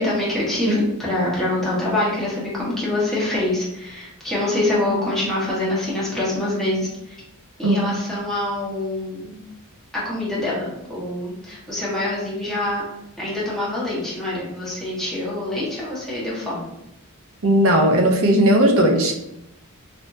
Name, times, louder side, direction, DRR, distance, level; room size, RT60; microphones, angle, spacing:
voice 1, 0.0-6.9 7.6-9.4 9.9-12.8 13.2-16.6, left 1 dB, ahead, -8 dB, 1.2 m, -25 dB
voice 2, 17.4-19.2, right 1 dB, 65° right, 3 dB, 0.6 m, -17 dB
3.4 x 2.7 x 2.6 m, 0.84 s
head